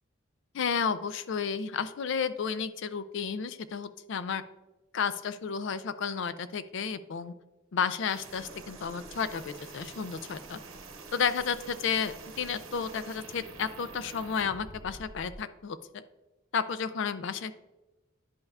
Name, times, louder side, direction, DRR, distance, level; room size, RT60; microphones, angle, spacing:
voice 1, 0.5-4.4 4.9-7.3 7.7-10.6 11.1-16.0 16.5-17.5, left 6 dB, 60° left, 13 dB, 0.4 m, -32 dB
sound 1, 8.1-15.3, right 3 dB, 75° right, 0.9 m, -47 dB
10.5 x 5.4 x 2.3 m, 1.1 s
head